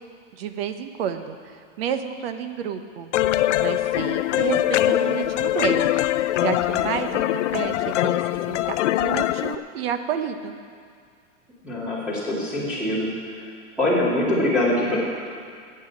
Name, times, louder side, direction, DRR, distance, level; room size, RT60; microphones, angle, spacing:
voice 1, 0.3-3.1 3.6-5.9 6.4-8.2 8.5-8.8 9.0-10.6, right 8 dB, 55° right, 8 dB, 1.1 m, -30 dB
sound 1, 3.1-9.6, left 14 dB, 70° left, 0.6 m, -22 dB
voice 2, 11.6-13.1 13.4-13.5 13.8-15.0, left 1 dB, 5° right, -9 dB, 2.7 m, -23 dB
14.5 x 8.2 x 7.6 m, 2.2 s
supercardioid pair, 165°, 37 cm